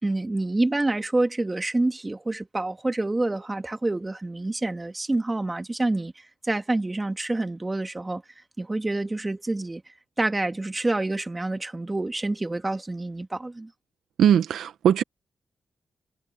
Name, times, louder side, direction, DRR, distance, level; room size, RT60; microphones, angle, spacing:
voice 1, 0.0-6.1 6.4-8.2 8.6-9.8 10.2-13.7, right 2 dB, 20° right, 2.4 m, -27 dB
voice 2, 14.2-15.0, right 9 dB, 90° right, 1.1 m, -20 dB
cardioid pair, 75°, 0 cm